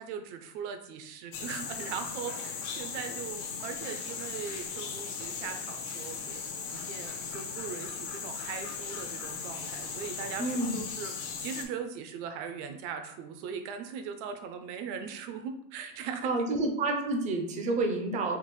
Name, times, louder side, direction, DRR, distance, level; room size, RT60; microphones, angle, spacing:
voice 1, 0.0-6.4 6.7-16.5, right 7 dB, 70° right, 6 dB, 0.5 m, -40 dB
sound 1, 1.3-11.7, left 6 dB, 55° left, 0.6 m, -38 dB
voice 2, 10.4-10.8 16.2-18.4, right 2 dB, 20° right, 4 dB, 0.4 m, -29 dB
3.6 x 2.0 x 3.0 m, 0.73 s
supercardioid pair, 135°, 36 cm